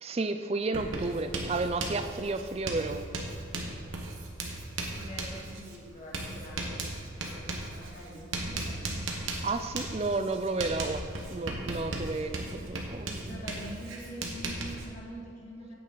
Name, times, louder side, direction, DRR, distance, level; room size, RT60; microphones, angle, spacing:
voice 1, 0.0-3.1 9.4-11.0 11.3-13.4, right 3 dB, 30° right, 9 dB, 0.4 m, -32 dB
Writing, 0.7-14.9, right 2 dB, 75° right, 1.2 m, -37 dB
voice 2, 5.0-9.1 13.3-15.7, right 1 dB, 35° left, -4 dB, 1.8 m, -45 dB
9.0 x 8.4 x 4.0 m, 2.3 s
head